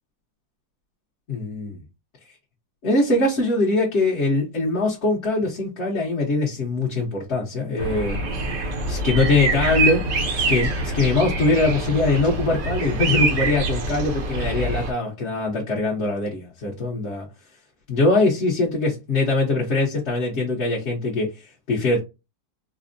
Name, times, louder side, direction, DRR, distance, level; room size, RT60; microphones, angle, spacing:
voice 1, 1.3-1.8 2.8-8.2 8.5-8.6 8.9-10.0 10.4-17.3 17.9-22.0, left 2 dB, 45° left, 1.0 m, -22 dB
sound 1, 7.8-14.9, right 2 dB, 55° right, 0.8 m, -25 dB
4.2 x 2.1 x 2.5 m
omnidirectional pair, 2.0 m